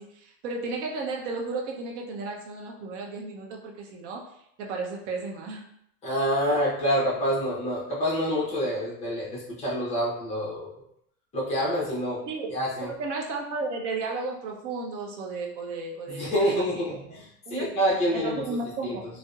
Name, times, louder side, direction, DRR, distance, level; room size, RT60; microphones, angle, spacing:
voice 1, 0.0-4.2 4.6-5.6 12.3-12.5 12.8-17.2 17.5-17.7 18.1-19.1, right 3 dB, 50° right, 0 dB, 0.6 m, -34 dB
voice 2, 6.0-10.8 11.3-12.2 12.5-12.9 16.1-19.0, equal, 15° left, -6 dB, 0.6 m, -27 dB
2.7 x 2.1 x 2.3 m, 0.73 s
supercardioid pair, 150°, 47 cm